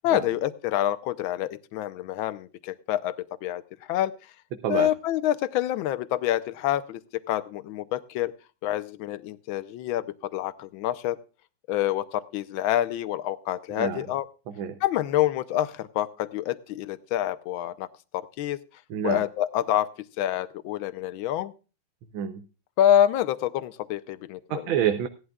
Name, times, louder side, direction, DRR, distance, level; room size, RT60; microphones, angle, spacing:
voice 1, 0.0-3.6 3.9-4.1 4.7-8.3 8.6-11.2 11.7-14.2 14.8-17.9 18.1-18.6 19.0-19.9 20.2-21.5 22.8-24.6, left 12 dB, 75° left, 14 dB, 1.5 m, -27 dB
voice 2, 13.7-14.0 14.5-14.8 18.9-19.2 22.1-22.4 24.5-25.1, right 9 dB, 70° right, 8 dB, 1.5 m, -28 dB
17.5 x 11.5 x 2.3 m, 0.32 s
omnidirectional pair, 2.3 m